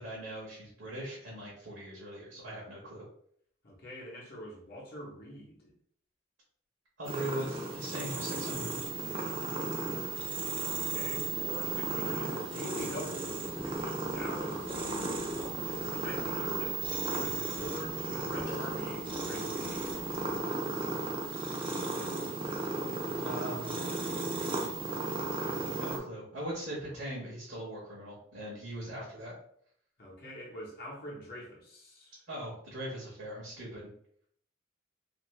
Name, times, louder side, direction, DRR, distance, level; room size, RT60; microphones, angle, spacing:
voice 1, 0.0-3.0 7.0-8.8 23.2-23.8 25.6-29.3 32.3-33.9, right 1 dB, 60° right, -5 dB, 0.8 m, -40 dB
voice 2, 3.6-5.7 10.7-15.0 15.9-20.1 30.0-32.2, equal, 50° left, -3 dB, 0.8 m, -45 dB
sound 1, 7.0-26.0, right 3 dB, 25° right, 0.5 m, -35 dB
sound 2, 12.8-20.5, left 1 dB, 20° left, 0.7 m, -51 dB
2.6 x 2.5 x 3.1 m, 0.65 s
head